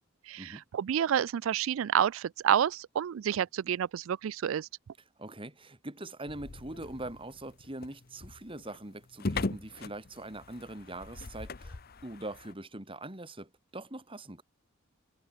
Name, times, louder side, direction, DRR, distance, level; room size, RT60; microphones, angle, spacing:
voice 1, 0.3-4.7, right 9 dB, 70° right, 0.3 m, -29 dB
voice 2, 5.2-14.4, right 1 dB, 25° right, 3.2 m, -43 dB
sound 1, 6.3-12.5, left 3 dB, 45° left, 0.8 m, -40 dB
head